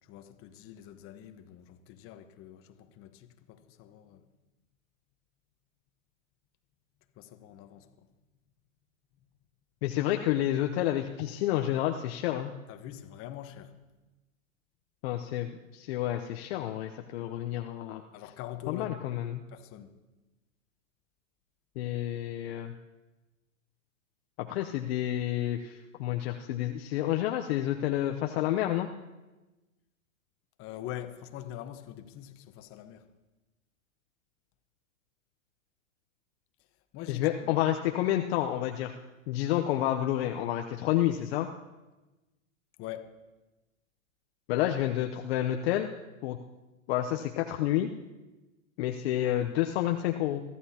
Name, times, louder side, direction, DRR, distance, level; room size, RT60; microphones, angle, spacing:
voice 1, 0.0-4.2 7.2-8.1 12.7-13.7 18.1-19.0 19.5-19.9 30.6-33.0 36.9-37.6 42.8-43.1, left 11 dB, 30° left, 1.2 m, -44 dB
voice 2, 9.8-12.5 15.0-18.0 18.7-19.4 21.8-22.7 24.4-28.9 37.1-38.9 39.3-41.5 44.5-45.9 46.2-46.4 46.9-47.9 48.8-50.4, left 12 dB, 50° left, 0.9 m, -29 dB
23.0 x 14.0 x 2.9 m
hypercardioid pair, 115°, 41 cm